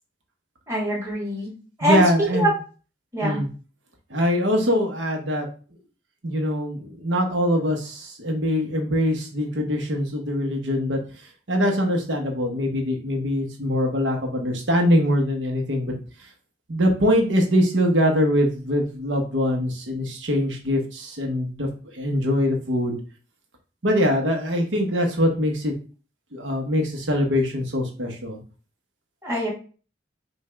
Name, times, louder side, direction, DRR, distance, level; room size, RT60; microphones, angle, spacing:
voice 1, 0.7-1.5 1.8-2.5 3.1-3.4 29.2-29.5, right 1 dB, 15° right, -3 dB, 1.7 m, -24 dB
voice 2, 1.8-2.5 3.2-3.5 4.1-5.4 6.2-11.0 11.5-15.9 16.7-21.7 21.9-23.0 23.8-25.7 26.3-28.4, equal, 90° right, 2 dB, 1.2 m, -23 dB
5.4 x 2.6 x 3.4 m, 0.38 s
head